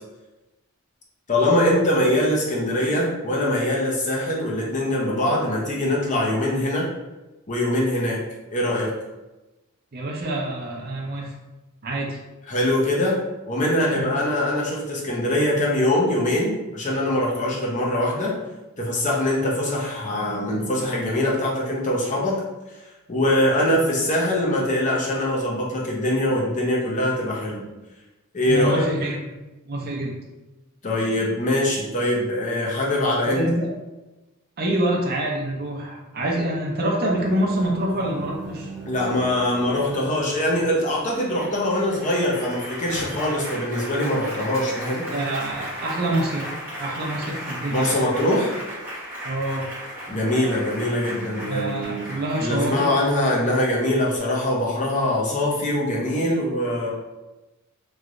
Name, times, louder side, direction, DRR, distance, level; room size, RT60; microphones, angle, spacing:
voice 1, 1.3-6.9 7.5-8.2 8.5-8.9 12.5-13.2 13.5-18.3 18.8-22.4 23.1-27.6 28.3-28.8 30.8-33.4 38.9-45.0 47.7-48.5 50.1-52.0 52.4-56.9, left 1 dB, 35° left, -4 dB, 0.7 m, -23 dB
voice 2, 9.9-11.3 11.8-12.2 13.9-14.2 28.5-29.2 29.7-30.2 33.3-33.7 34.6-38.7 45.1-46.5 46.8-48.1 49.2-49.7 51.5-52.9, right 1 dB, 45° right, -1 dB, 0.6 m, -26 dB
Applause, 37.2-54.2, equal, 10° right, 1.0 m, -36 dB
3.1 x 2.9 x 2.5 m, 1.0 s
head